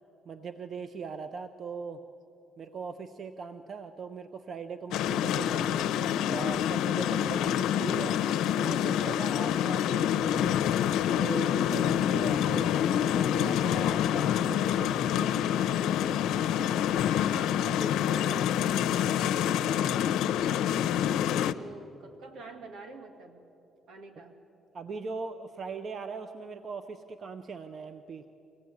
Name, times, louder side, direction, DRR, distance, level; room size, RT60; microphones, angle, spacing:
voice 1, 0.3-2.0 2.6-5.9 6.3-8.2 8.5-10.6 11.2-15.5 24.2-24.3 24.7-28.2, right 5 dB, 50° right, 9 dB, 0.9 m, -40 dB
sound 1, 4.9-21.5, left 10 dB, 90° left, 0.6 m, -27 dB
voice 2, 17.3-20.1 20.4-23.4 23.9-24.4, right 2 dB, 85° right, 5 dB, 2.4 m, -46 dB
24.5 x 16.0 x 9.6 m, 2.9 s
cardioid pair, 90°, 0 cm